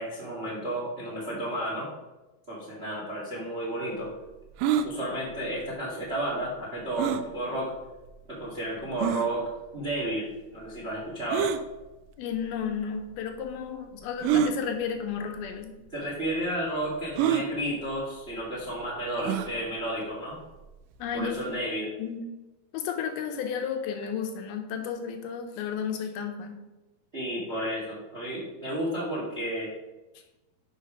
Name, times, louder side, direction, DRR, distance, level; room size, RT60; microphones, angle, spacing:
voice 1, 0.0-1.9 2.5-4.1 4.8-7.7 8.3-9.4 9.7-11.5 15.9-20.4 21.1-21.9 27.1-29.7, right 1 dB, 25° right, -5 dB, 1.3 m, -32 dB
sound 1, 4.6-4.9 7.0-7.3 8.1-8.2 9.0-9.3 11.3-11.6 12.7-12.8 14.2-14.5 15.5-15.6 15.9-16.0 17.2-17.5 19.2-19.5, right 9 dB, 90° right, 1.9 m, -25 dB
voice 2, 12.2-15.8 21.0-21.4 22.0-22.2 22.7-26.6, left 7 dB, 80° left, 5 dB, 2.6 m, -33 dB
6.5 x 5.4 x 5.2 m, 1.1 s
omnidirectional pair, 4.5 m